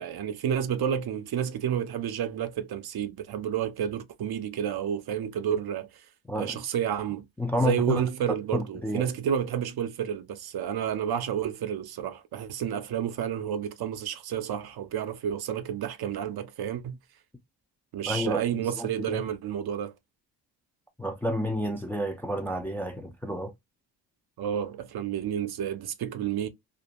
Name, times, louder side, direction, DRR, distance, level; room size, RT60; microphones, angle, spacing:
voice 1, 0.0-6.0 6.3-7.3 7.6-17.0 17.9-19.9 24.4-26.5, right 9 dB, 55° right, 0.6 m, -30 dB
voice 2, 7.4-8.1 8.5-9.1 18.1-19.2 21.0-23.5, left 1 dB, 5° left, 0.3 m, -30 dB
2.5 x 2.1 x 2.8 m
cardioid pair, 90°, 45 cm